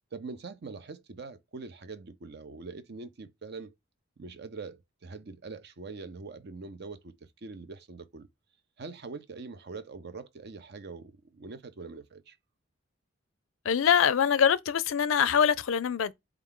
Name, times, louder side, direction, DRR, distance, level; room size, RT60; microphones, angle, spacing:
voice 1, 0.1-3.7 4.2-8.3 8.8-12.4, right 4 dB, 55° right, 0.6 m, -43 dB
voice 2, 13.6-16.1, left 7 dB, 75° left, 0.4 m, -24 dB
4.5 x 2.4 x 3.6 m
head